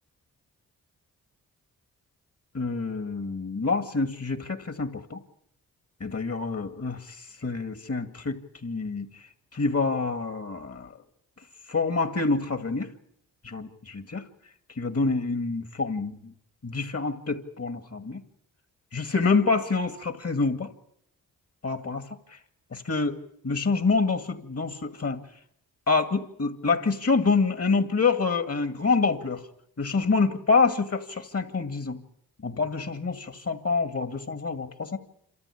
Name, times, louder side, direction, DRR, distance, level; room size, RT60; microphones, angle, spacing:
voice 1, 2.5-5.2 6.0-7.2 7.4-9.1 9.5-10.9 11.7-12.9 13.4-14.2 14.8-16.3 16.6-18.2 18.9-20.7 21.6-22.1 22.7-23.2 23.4-25.2 25.9-29.4 29.8-32.0 32.4-35.0, left 4 dB, 45° left, 8 dB, 2.3 m, -26 dB
27.5 x 13.5 x 8.5 m, 0.71 s
cardioid pair, 55°, 35 cm